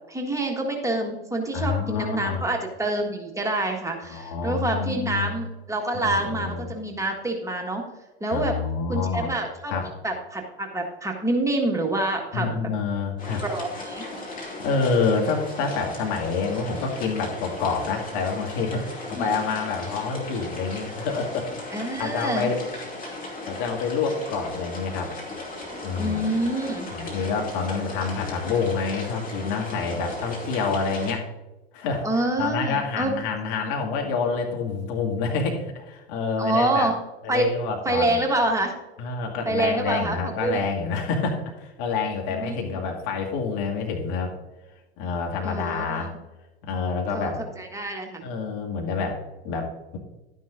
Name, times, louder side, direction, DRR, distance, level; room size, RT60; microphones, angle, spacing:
voice 1, 0.1-7.8 8.2-8.6 8.9-9.7 10.0-12.5 13.4-14.0 19.1-19.3 21.7-22.5 26.0-26.9 32.0-33.1 36.4-36.9 37.3-37.5 37.8-38.7 39.4-40.6 42.3-42.8 45.4-46.1 47.1-47.3 47.6-48.2, right 2 dB, 10° right, 1 dB, 1.5 m, -26 dB
voice 2, 1.5-2.4 4.1-5.3 5.9-6.7 8.3-9.3 9.7-9.9 12.3-13.4 14.6-21.5 22.0-22.6 23.5-25.1 25.8-26.2 26.9-31.3 31.7-32.0 32.4-36.9 37.2-38.1 39.0-44.3 45.0-46.1 46.6-47.4 48.2-50.0, left 4 dB, 55° left, 1 dB, 2.1 m, -27 dB
sound 1, 13.2-31.1, left 2 dB, 25° left, 2.5 m, -37 dB
11.5 x 9.9 x 2.5 m, 1.1 s
figure-of-eight pair, 80°, 31 cm